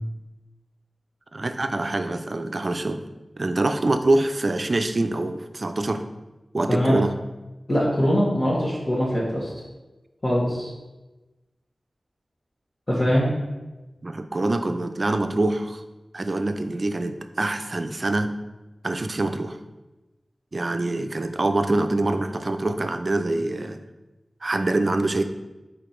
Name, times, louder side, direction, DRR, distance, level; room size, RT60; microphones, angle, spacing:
voice 1, 1.3-3.0 3.4-6.0 6.5-7.1 14.0-15.8 16.1-18.3 18.8-19.6 20.5-23.8 24.4-25.2, right 2 dB, 50° right, 8 dB, 0.5 m, -25 dB
voice 2, 7.7-9.5 10.2-10.7 12.9-13.3, equal, 35° left, -8 dB, 1.6 m, -22 dB
5.1 x 4.3 x 4.4 m, 1.1 s
wide cardioid pair, 50°, 0 cm